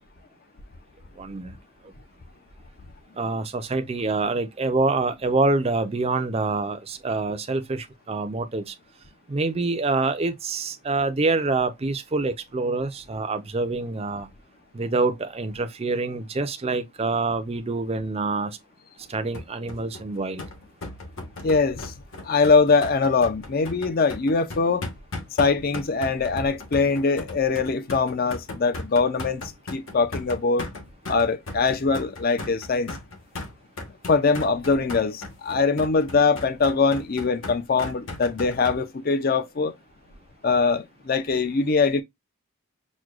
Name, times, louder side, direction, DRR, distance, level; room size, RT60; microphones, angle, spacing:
voice 1, 1.2-1.6 3.2-8.7 9.3-14.3 14.7-18.6 19.1-20.4, right 3 dB, 25° right, 0.4 m, -26 dB
sound 1, 19.3-38.8, left 2 dB, 60° left, 1.3 m, -37 dB
voice 2, 21.4-21.9 22.2-24.8 25.4-29.4 29.7-30.7 31.1-32.9 34.1-39.7 40.4-42.0, left 4 dB, 40° left, 0.5 m, -22 dB
6.1 x 2.2 x 2.4 m
head